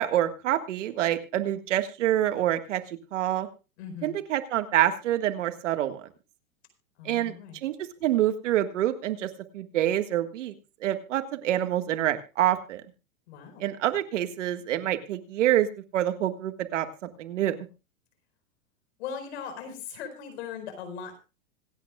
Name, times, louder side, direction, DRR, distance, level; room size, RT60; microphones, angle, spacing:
voice 1, 0.0-3.5 4.0-6.0 7.0-7.3 7.6-9.3 9.5-10.5 10.8-12.8 13.6-15.7 15.9-16.9 17.2-17.5, right 12 dB, 65° right, 9 dB, 1.7 m, -26 dB
voice 2, 3.8-4.2 7.0-7.6 13.3-13.6 19.0-21.2, left 7 dB, 55° left, 7 dB, 4.7 m, -39 dB
26.0 x 8.8 x 2.3 m, 0.30 s
supercardioid pair, 160°, 40 cm